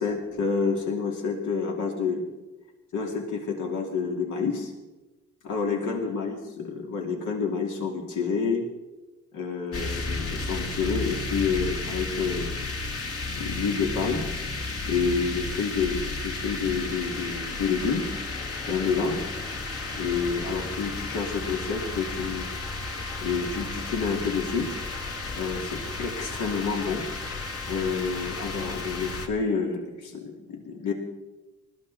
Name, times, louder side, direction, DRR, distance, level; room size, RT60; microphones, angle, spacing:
voice 1, 0.0-2.3 2.9-4.7 5.4-8.7 9.3-12.5 13.3-14.3 14.9-18.0 18.7-19.3 19.9-22.5 23.2-24.8 25.3-27.1 27.7-30.9, left 5 dB, 80° left, 1 dB, 3.0 m, -28 dB
sound 1, 9.7-29.3, left 3 dB, 50° left, 2.1 m, -33 dB
20.0 x 14.0 x 4.3 m, 1.1 s
cardioid pair, 90°, 30 cm